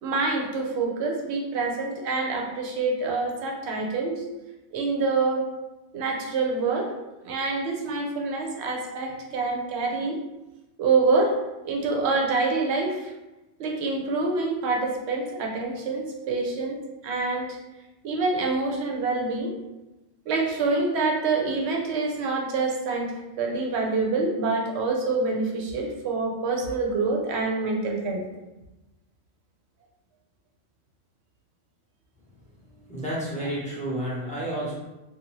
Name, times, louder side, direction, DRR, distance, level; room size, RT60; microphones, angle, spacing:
voice 1, 0.0-4.3 4.7-5.4 5.9-6.9 7.2-10.2 10.8-11.3 11.6-13.1 13.6-16.8 17.0-17.6 18.0-19.5 20.3-28.2, right 3 dB, 65° right, 0 dB, 0.8 m, -26 dB
voice 2, 32.5-34.7, right 1 dB, 5° left, -8 dB, 0.7 m, -31 dB
2.6 x 2.3 x 2.9 m, 1.0 s
omnidirectional pair, 1.3 m